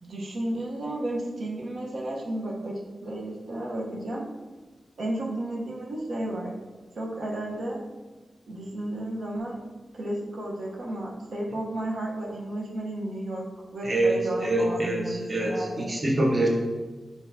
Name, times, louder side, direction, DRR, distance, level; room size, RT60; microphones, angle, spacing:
voice 1, 0.0-4.3 5.0-6.5 7.0-7.8 8.5-9.6 9.9-13.5 13.7-15.9, right 1 dB, 85° right, -2 dB, 0.8 m, -33 dB
voice 2, 13.8-16.5, right 1 dB, 35° right, 0 dB, 0.5 m, -25 dB
4.7 x 4.0 x 2.6 m, 1.3 s
wide cardioid pair, 120°, 0 cm